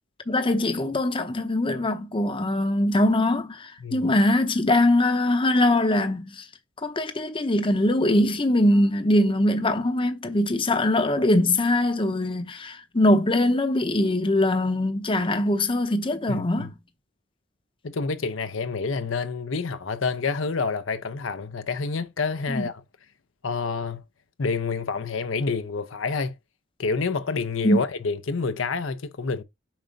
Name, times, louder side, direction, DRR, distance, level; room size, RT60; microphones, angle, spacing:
voice 1, 0.3-6.4 6.8-16.7 22.5-22.7 27.6-27.8, left 1 dB, 25° left, 0.8 m, -22 dB
voice 2, 16.3-16.7 17.8-22.8 23.4-24.0 24.4-26.3 26.8-29.4, left 4 dB, 75° left, 0.7 m, -28 dB
7.3 x 2.6 x 5.1 m
head